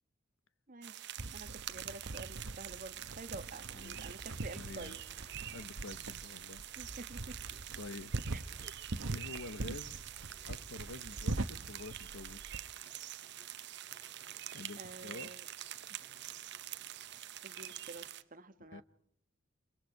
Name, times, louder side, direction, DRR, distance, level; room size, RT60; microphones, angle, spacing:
voice 1, 0.7-5.0 6.8-7.6 8.3-8.7 14.8-15.5 17.4-18.0 18.3-18.8, right 3 dB, 40° right, 10 dB, 1.4 m, -49 dB
sound 1, 0.8-18.2, right 13 dB, 55° right, 1.0 m, -46 dB
sound 2, 1.2-12.6, right 2 dB, 75° right, 1.1 m, -42 dB
sound 3, 3.1-18.1, equal, 10° left, 5.9 m, -65 dB
voice 2, 3.7-4.1 4.4-5.0 5.5-6.6 7.8-8.1 9.1-10.0 10.4-12.5 14.5-15.3 15.9-16.0 18.6-18.8, left 3 dB, 70° left, 16 dB, 0.9 m, -48 dB
29.0 x 25.0 x 4.7 m, 0.73 s
head